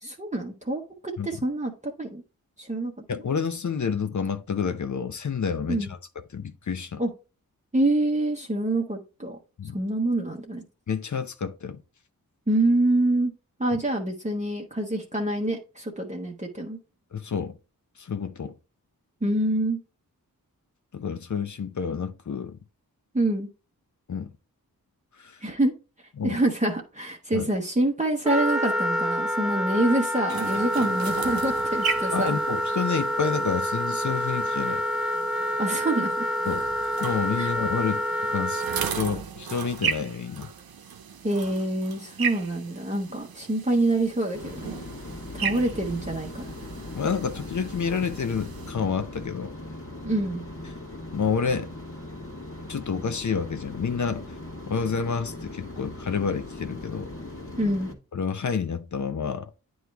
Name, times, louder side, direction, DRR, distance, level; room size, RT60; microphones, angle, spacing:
voice 1, 0.0-2.2 2.6-2.9 5.7-5.9 7.0-7.1 7.7-9.4 9.7-10.6 12.5-13.3 13.6-16.8 19.2-19.8 23.1-23.5 25.4-25.7 26.2-32.4 35.6-36.1 37.4-37.5 41.2-44.7 45.3-46.4 50.0-50.4 57.6-57.9, right 1 dB, 20° right, 1.1 m, -26 dB
voice 2, 3.1-6.0 6.3-7.0 9.6-9.8 10.9-11.8 17.1-17.6 18.0-18.5 20.9-22.6 24.1-24.3 25.2-25.4 26.2-26.4 27.3-27.5 32.1-34.8 36.5-36.6 37.0-38.0 38.3-40.5 46.9-49.5 51.1-51.7 52.7-54.2 54.7-57.1 58.1-59.5, left 6 dB, 55° left, 0.7 m, -29 dB
Wind instrument woodwind instrument, 28.2-38.9, equal, ahead, 0.6 m, -27 dB
sound 1, 30.3-48.7, right 7 dB, 75° right, 0.8 m, -36 dB
sound 2, 44.3-57.9, left 1 dB, 35° left, 1.6 m, -39 dB
9.2 x 3.2 x 3.4 m
cardioid pair, 55°, 36 cm